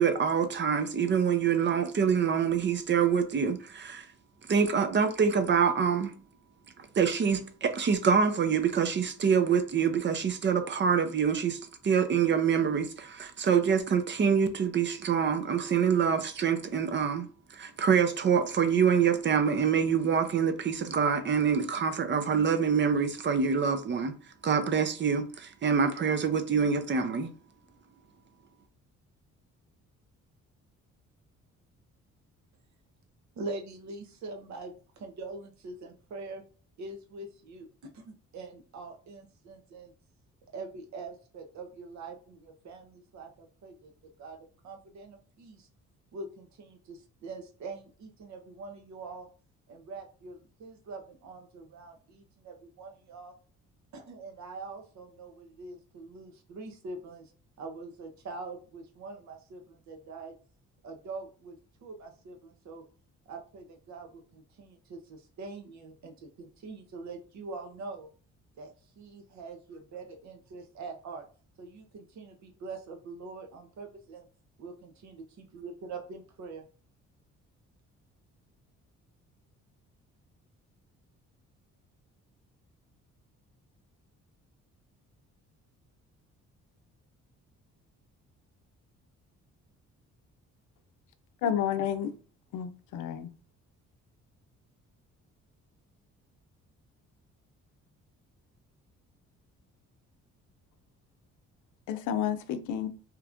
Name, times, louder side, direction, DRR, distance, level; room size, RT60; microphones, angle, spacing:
voice 1, 0.0-4.1 4.5-6.1 6.8-17.3 17.5-24.1 24.4-27.3, right 6 dB, 40° right, 0.6 m, -26 dB
voice 2, 33.4-36.4 36.8-37.7 37.9-39.9 40.5-43.9 44.2-45.7 46.1-49.3 49.7-53.3 53.9-57.3 57.6-60.3 60.8-62.8 63.3-68.1 68.6-71.3 71.6-74.3 74.6-76.6, right 3 dB, 65° right, 0.9 m, -44 dB
voice 3, 91.4-92.1 92.5-93.3 101.9-102.9, left 9 dB, 80° left, 0.5 m, -30 dB
3.0 x 2.4 x 3.5 m
cardioid pair, 90°, 30 cm